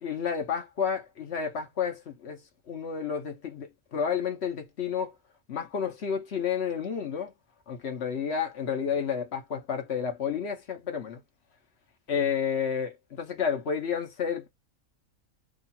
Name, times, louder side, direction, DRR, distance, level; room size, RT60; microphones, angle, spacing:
voice 1, 0.0-2.4 2.7-5.1 5.5-7.3 7.7-11.2 12.1-14.5, left 7 dB, 55° left, 1.1 m, -31 dB
3.1 x 2.4 x 4.2 m
omnidirectional pair, 1.5 m